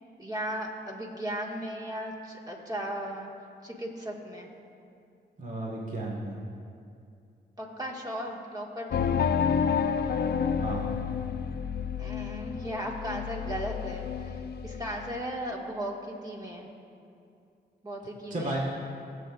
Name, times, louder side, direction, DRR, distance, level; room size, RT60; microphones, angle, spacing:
voice 1, 0.2-3.3 3.6-4.5 7.6-9.1 12.0-16.7 17.8-18.5, right 1 dB, 20° right, -2 dB, 1.8 m, -36 dB
voice 2, 5.4-6.4 10.6-10.9 18.3-18.6, right 2 dB, 45° right, -2 dB, 1.7 m, -33 dB
sound 1, 8.9-15.2, left 7 dB, 65° left, 0.5 m, -30 dB
20.0 x 7.6 x 2.5 m, 2.5 s
cardioid pair, 70°, 18 cm